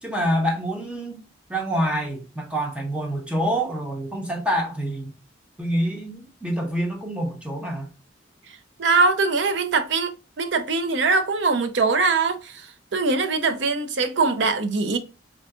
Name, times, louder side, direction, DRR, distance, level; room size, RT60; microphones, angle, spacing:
voice 1, 0.0-1.2 1.5-5.2 5.6-7.9, equal, 5° right, 0.8 m, -26 dB
voice 2, 8.8-12.7 12.9-15.0, right 4 dB, 70° right, 0.6 m, -22 dB
3.8 x 3.6 x 2.3 m
head